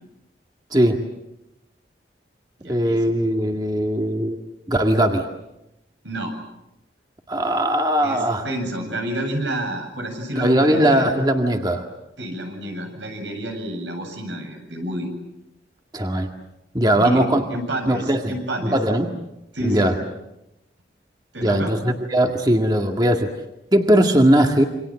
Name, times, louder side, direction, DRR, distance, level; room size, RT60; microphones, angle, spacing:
voice 1, 0.7-1.1 2.6-4.4 4.7-5.2 7.3-8.4 10.3-11.9 15.9-16.3 16.7-17.4 17.9-18.3 18.6-19.1 19.6-20.0 21.4-23.3 23.7-24.6, right 1 dB, 20° right, 4 dB, 1.9 m, -19 dB
voice 2, 2.6-3.0 6.0-6.3 8.0-11.1 12.2-15.1 16.9-18.8 19.5-19.9 21.3-21.7, right 1 dB, 90° right, 4 dB, 8.0 m, -29 dB
28.5 x 25.5 x 7.6 m, 0.90 s
head